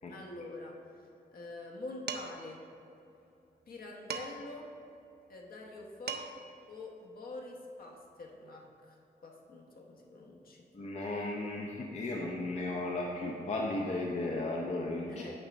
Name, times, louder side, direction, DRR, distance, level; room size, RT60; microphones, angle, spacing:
voice 1, 0.1-0.8 1.3-2.6 3.7-4.7 5.3-6.3 6.7-8.9 9.2-10.7 15.1-15.3, left 2 dB, 60° left, 0 dB, 1.0 m, -46 dB
Dishes pots and pans, 2.1-2.5 4.1-4.6 5.7-5.8 6.1-6.5, right 6 dB, 75° right, 0.5 m, -39 dB
voice 2, 10.7-15.2, left 2 dB, 45° left, -2 dB, 0.6 m, -35 dB
9.0 x 3.3 x 6.1 m, 2.8 s
wide cardioid pair, 155°, 17 cm